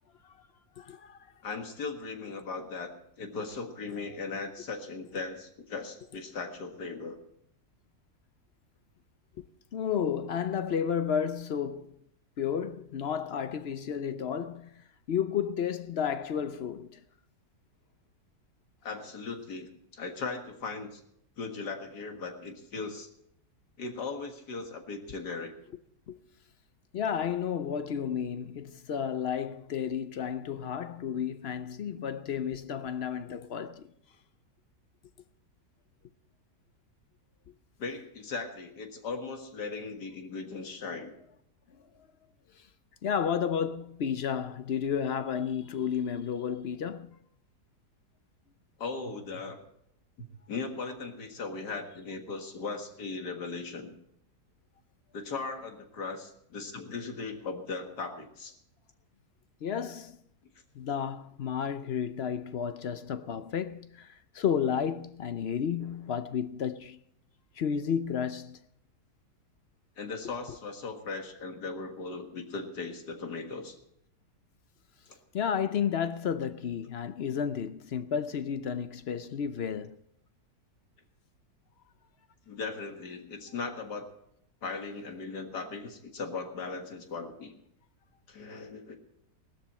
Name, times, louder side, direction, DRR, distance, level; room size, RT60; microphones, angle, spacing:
voice 1, 0.8-1.2 9.4-9.5 9.7-12.0 12.4-17.0 26.1-26.2 26.9-33.9 37.5-37.6 42.5-42.7 43.0-47.2 59.6-60.2 60.7-67.0 67.6-68.6 75.3-80.0, left 7 dB, 60° left, 0.7 m, -32 dB
voice 2, 1.4-7.2 18.8-21.0 21.4-23.1 23.8-25.5 37.8-41.1 48.8-49.6 50.2-53.9 55.1-58.6 70.0-73.8 75.1-75.2 82.5-84.1 84.6-87.5 88.3-89.0, left 4 dB, 90° left, 2.4 m, -38 dB
18.5 x 13.0 x 4.3 m
omnidirectional pair, 1.7 m